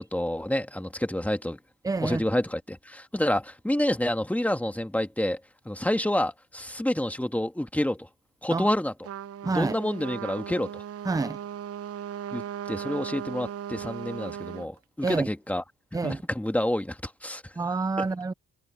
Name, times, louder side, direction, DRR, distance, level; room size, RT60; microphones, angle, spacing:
voice 1, 0.0-1.6 2.0-5.4 5.7-8.1 8.4-8.9 9.4-10.8 12.3-15.6 16.0-17.5, left 1 dB, 5° left, 1.9 m, -28 dB
voice 2, 1.8-2.2 8.5-8.7 9.4-9.8 11.0-11.4 15.0-15.3 15.9-16.2 17.6-18.3, right 3 dB, 10° right, 0.5 m, -27 dB
Trumpet, 9.0-14.7, right 9 dB, 50° right, 0.8 m, -37 dB
cardioid pair, 90°, 30 cm